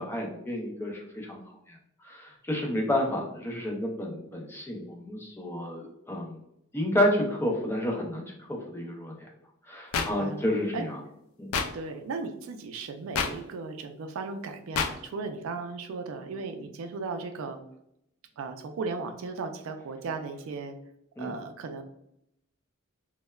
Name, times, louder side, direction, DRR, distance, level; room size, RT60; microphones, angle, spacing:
voice 1, 0.0-1.4 1.7-1.8 2.0-6.4 6.7-9.3 9.7-11.0 11.4-11.5 21.2-21.3, left 1 dB, 10° left, 0 dB, 0.4 m, -30 dB
sound 1, 9.9-10.1 11.5-11.7 13.1-13.3 14.7-14.9, left 6 dB, 80° left, 0.3 m, -26 dB
voice 2, 9.9-10.4 10.7-10.9 11.7-17.6 18.4-20.7 21.2-21.8, right 4 dB, 75° right, 7 dB, 0.3 m, -36 dB
3.1 x 2.1 x 2.2 m, 0.78 s
head